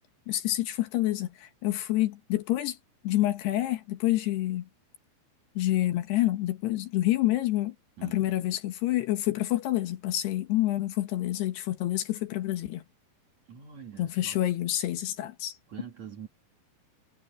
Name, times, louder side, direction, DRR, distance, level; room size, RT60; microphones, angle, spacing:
voice 1, 0.3-2.8 3.0-4.6 5.6-7.7 8.0-12.8 14.0-15.6, left 15 dB, 70° left, 3.2 m, -28 dB
voice 2, 8.0-8.4 13.5-14.4 15.7-16.3, right 7 dB, 45° right, 2.9 m, -44 dB
omnidirectional pair, 5.1 m